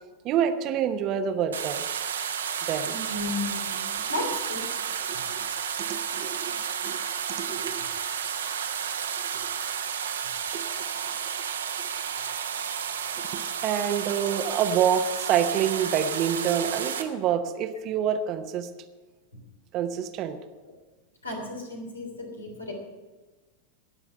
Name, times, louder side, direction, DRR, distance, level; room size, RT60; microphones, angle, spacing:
voice 1, 0.2-1.8 2.7-3.0 5.3-5.5 5.9-6.5 6.8-7.0 7.4-7.8 10.5-10.6 13.2-18.7 19.7-20.4, right 9 dB, 35° right, 9 dB, 0.9 m, -27 dB
sound 1, 1.5-17.0, right 8 dB, 65° right, 1.1 m, -32 dB
voice 2, 2.9-4.6 14.2-14.3 21.2-22.7, left 2 dB, 80° left, 1 dB, 3.4 m, -34 dB
18.5 x 7.1 x 5.6 m, 1.2 s
figure-of-eight pair, 90°, 0 cm